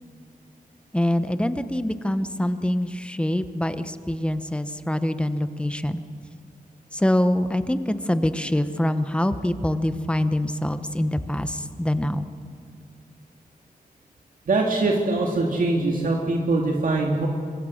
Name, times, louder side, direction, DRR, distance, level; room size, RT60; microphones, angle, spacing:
voice 1, 0.9-6.0 6.9-12.3, left 1 dB, 5° left, 10 dB, 1.0 m, -25 dB
voice 2, 14.5-17.3, right 2 dB, 65° right, 0 dB, 2.5 m, -22 dB
25.5 x 24.5 x 6.5 m, 2.3 s
wide cardioid pair, 145°, 15 cm